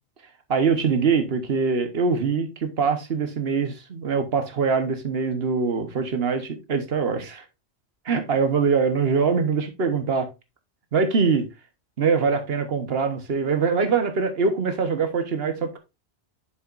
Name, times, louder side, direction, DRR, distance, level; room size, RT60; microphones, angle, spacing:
voice 1, 0.5-7.4 8.0-10.3 10.9-11.5 12.0-15.8, right 5 dB, 60° right, 1.3 m, -23 dB
7.0 x 6.9 x 2.5 m
omnidirectional pair, 1.1 m